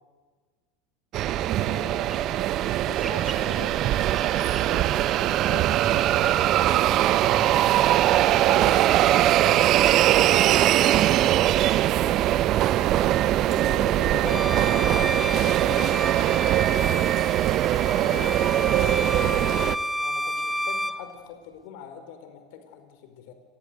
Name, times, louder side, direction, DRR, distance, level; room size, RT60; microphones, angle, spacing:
sound 1, 1.1-19.8, right 13 dB, 45° right, 1.0 m, -21 dB
voice 1, 1.3-2.3 2.8-5.7 6.6-7.8 8.1-9.8 10.1-12.2 13.5-14.0 18.7-19.5, left 5 dB, 80° left, 8 dB, 4.0 m, -43 dB
sound 2, 1.5-11.9, right 4 dB, 25° right, 4.0 m, -43 dB
voice 2, 12.7-16.8 17.8-18.9 19.2-19.7 20.0-23.3, left 7 dB, 60° left, 8 dB, 4.9 m, -42 dB
Bowed string instrument, 14.3-21.0, equal, ahead, 1.9 m, -31 dB
29.0 x 22.5 x 8.2 m, 1.4 s
hypercardioid pair, 80°, 0 cm